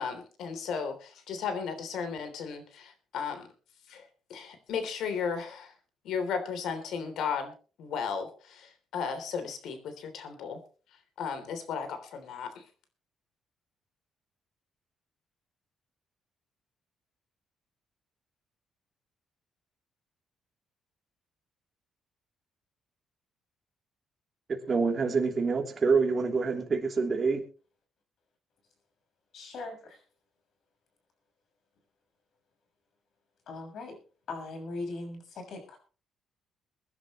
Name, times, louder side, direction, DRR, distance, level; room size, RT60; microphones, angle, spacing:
voice 1, 0.0-3.5 3.9-4.0 4.3-5.7 6.0-7.5 7.8-10.6 11.2-12.6, left 6 dB, 75° left, 3.3 m, -35 dB
voice 2, 24.5-27.4, right 4 dB, 35° right, 3.2 m, -26 dB
voice 3, 29.3-30.0 33.5-34.0 34.3-35.8, left 3 dB, 60° left, 6.6 m, -39 dB
23.0 x 11.0 x 3.2 m
cardioid pair, 120°, 0 cm